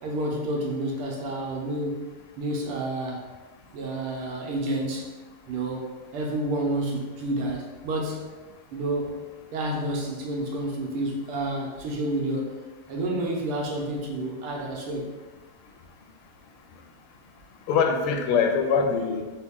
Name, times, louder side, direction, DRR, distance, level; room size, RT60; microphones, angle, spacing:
voice 1, 0.0-2.0 2.4-3.3 3.7-5.1 5.5-8.3 8.7-9.2 9.5-12.6 12.9-15.1, right 1 dB, 90° right, 0 dB, 1.7 m, -29 dB
voice 2, 16.2-16.9 17.4-19.3, left 5 dB, 85° left, 4 dB, 1.5 m, -25 dB
3.9 x 3.0 x 3.5 m, 1.3 s
omnidirectional pair, 2.4 m